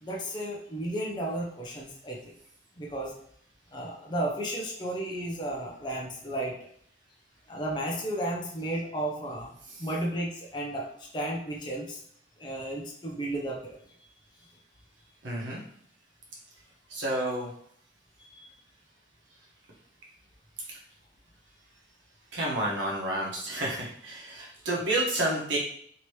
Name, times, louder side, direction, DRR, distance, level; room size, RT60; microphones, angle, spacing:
voice 1, 0.0-2.2 2.8-3.1 3.7-6.6 7.5-12.0 12.4-13.8 18.2-18.5, right 1 dB, 25° left, -2 dB, 0.5 m, -33 dB
voice 2, 15.2-15.6 16.9-17.5 22.3-25.6, right 1 dB, 75° right, -3 dB, 1.0 m, -30 dB
2.9 x 2.8 x 3.1 m, 0.65 s
head